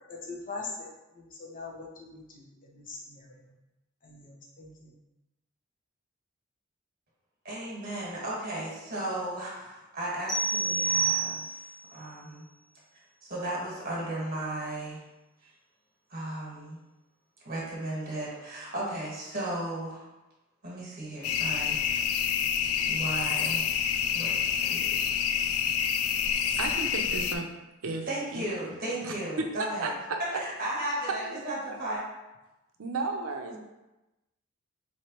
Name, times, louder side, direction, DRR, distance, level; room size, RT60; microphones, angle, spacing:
voice 1, 0.1-0.9 1.1-3.4 4.0-4.9, left 3 dB, 40° left, -2 dB, 0.8 m, -42 dB
voice 2, 7.4-11.4 11.9-12.4 13.2-15.0 16.1-16.8 17.4-20.0 20.6-22.0 22.9-23.8 24.1-24.3 24.6-25.0 28.1-29.9 30.3-32.0, right 1 dB, 45° right, -5 dB, 1.3 m, -35 dB
sound 1, 10.3-11.8, right 4 dB, 5° left, 0.6 m, -28 dB
sound 2, 21.2-27.4, left 8 dB, 85° left, 0.3 m, -28 dB
voice 3, 26.5-27.4 27.8-28.7 29.0-29.5 29.8-30.2 31.0-31.9 32.8-33.6, right 3 dB, 80° right, 3 dB, 0.6 m, -34 dB
4.3 x 3.2 x 2.9 m, 1.0 s
head